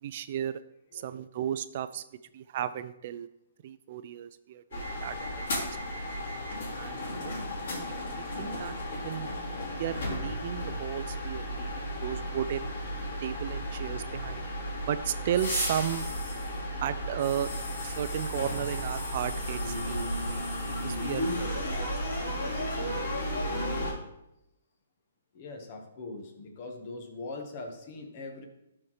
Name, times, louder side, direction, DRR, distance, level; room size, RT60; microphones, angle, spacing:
voice 1, 0.0-0.6 0.9-2.0 2.3-3.3 3.6-5.7 6.8-7.4 7.7-9.3 9.7-12.8 13.2-14.5 14.9-16.0 16.8-17.5 17.8-20.4 20.8-22.9, right 10 dB, 45° right, 13 dB, 0.3 m, -35 dB
sound 1, 4.7-23.9, equal, 60° left, 2.9 m, -34 dB
voice 2, 25.3-28.4, left 3 dB, 40° left, 3 dB, 1.3 m, -41 dB
11.5 x 4.3 x 3.2 m, 0.85 s
hypercardioid pair, 145°, 0 cm